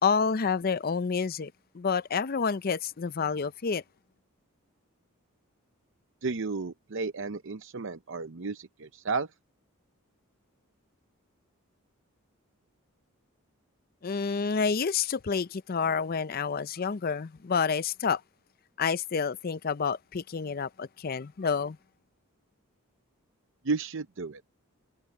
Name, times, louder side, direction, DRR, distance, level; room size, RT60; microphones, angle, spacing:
voice 1, 0.0-3.8 14.0-18.2 18.8-21.8, left 5 dB, 45° left, 0.5 m, -29 dB
voice 2, 6.2-9.3 23.6-24.4, right 4 dB, 60° right, 0.7 m, -33 dB
head